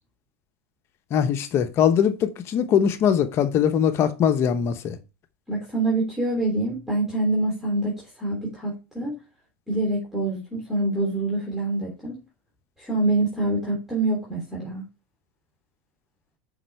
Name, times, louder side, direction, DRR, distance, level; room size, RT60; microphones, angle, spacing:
voice 1, 1.1-5.0, left 8 dB, 40° left, 0.9 m, -21 dB
voice 2, 5.5-9.2 9.7-12.2 12.8-14.8, right 2 dB, 5° right, 3.1 m, -25 dB
6.0 x 5.3 x 4.6 m
hypercardioid pair, 110°, 6 cm